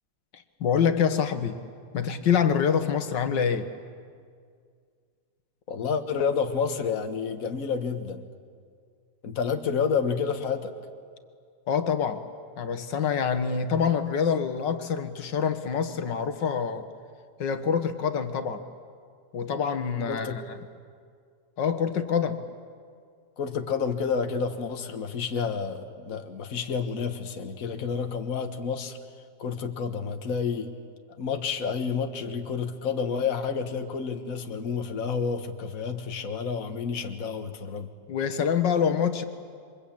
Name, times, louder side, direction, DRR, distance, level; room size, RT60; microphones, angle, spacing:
voice 1, 0.3-1.6 1.9-3.7 11.7-12.2 12.6-16.9 17.4-18.6 19.3-20.4 21.6-22.5 38.1-39.2, left 7 dB, 85° left, 9 dB, 2.0 m, -26 dB
voice 2, 5.7-8.2 9.2-10.7 20.1-20.4 23.4-29.0 29.4-30.7 31.2-37.9, left 6 dB, 50° left, 6 dB, 1.8 m, -29 dB
27.5 x 24.5 x 8.7 m, 2.1 s
omnidirectional pair, 1.9 m